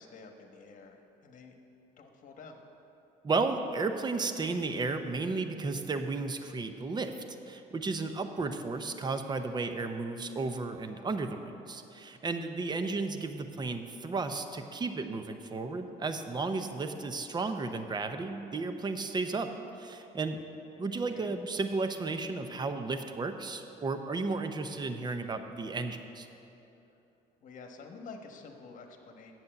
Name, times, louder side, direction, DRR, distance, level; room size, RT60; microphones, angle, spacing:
voice 1, 0.0-1.6 1.8-2.7 12.7-12.9 21.1-21.3 26.9-27.0 27.4-29.3, left 4 dB, 50° left, 4 dB, 1.2 m, -49 dB
voice 2, 3.2-7.1 7.5-19.5 19.8-20.4 20.8-26.3, right 3 dB, 25° right, 8 dB, 0.7 m, -33 dB
8.4 x 7.3 x 7.8 m, 3.0 s
cardioid pair, 110°, 17 cm